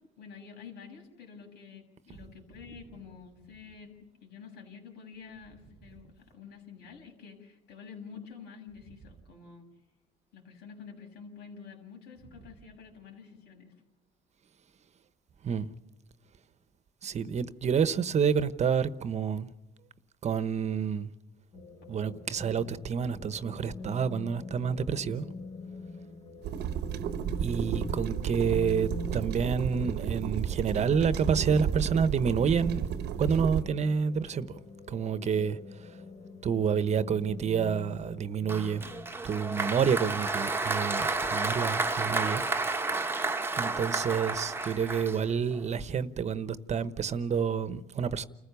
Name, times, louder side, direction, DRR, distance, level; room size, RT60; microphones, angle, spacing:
voice 1, 0.2-4.0 4.2-9.7 10.3-13.7, left 6 dB, 80° left, 6.8 m, -48 dB
voice 2, 17.0-19.5 20.2-21.1 21.9-25.2 27.4-32.8 33.2-34.6 34.9-35.9 36.4-38.9 39.2-42.4 43.6-48.3, right 6 dB, 40° right, 1.1 m, -29 dB
sound 1, 21.5-39.0, left 3 dB, 35° left, 2.0 m, -45 dB
sound 2, 26.4-33.6, right 9 dB, 80° right, 1.1 m, -33 dB
Applause, 38.5-45.6, right 3 dB, 15° right, 1.2 m, -31 dB
29.5 x 15.0 x 7.0 m
cardioid pair, 110°, 17 cm